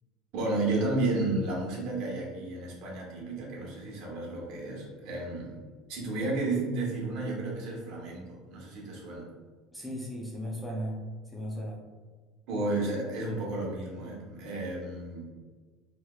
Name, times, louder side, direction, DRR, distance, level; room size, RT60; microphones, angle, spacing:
voice 1, 0.3-5.6 5.9-9.2 12.5-15.3, right 2 dB, 60° right, -3 dB, 1.0 m, -32 dB
voice 2, 9.7-11.8, equal, 5° left, -4 dB, 0.5 m, -36 dB
3.2 x 2.9 x 2.3 m, 1.4 s
supercardioid pair, 135°, 0 cm